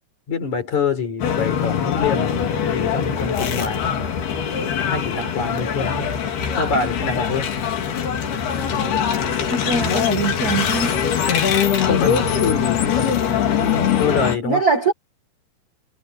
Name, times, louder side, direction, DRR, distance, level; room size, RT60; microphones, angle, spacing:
voice 1, 0.3-4.1 4.9-6.1 6.5-7.5 11.8-14.7, left 4 dB, 50° left, 5.5 m, -25 dB
sound 1, 1.2-14.4, left 8 dB, 80° left, 4.8 m, -22 dB
voice 2, 9.5-10.9 14.4-14.9, right 3 dB, 50° right, 1.1 m, -22 dB
omnidirectional pair, 4.4 m